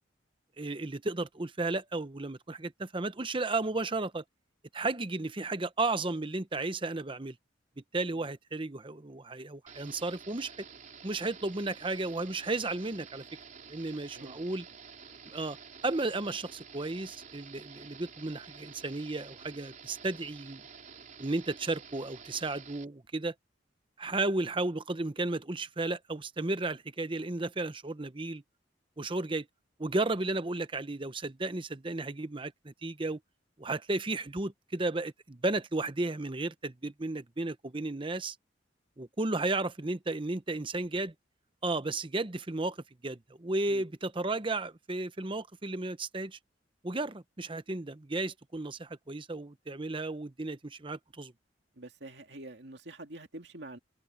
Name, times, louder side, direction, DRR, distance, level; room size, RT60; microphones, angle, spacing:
voice 1, 0.6-4.2 4.7-7.4 7.9-10.7 11.0-13.2 13.7-14.6 15.3-15.6 15.8-20.6 21.2-23.3 24.0-28.4 29.0-29.5 29.8-33.2 33.6-38.4 39.0-41.1 41.6-42.8 43.0-46.4 46.8-51.3, right 2 dB, 25° right, 0.8 m, -33 dB
sound 1, 9.7-22.9, right 6 dB, 45° right, 4.5 m, -50 dB
voice 2, 13.9-14.4 43.7-43.8 51.8-53.8, right 2 dB, 65° right, 2.5 m, -47 dB
head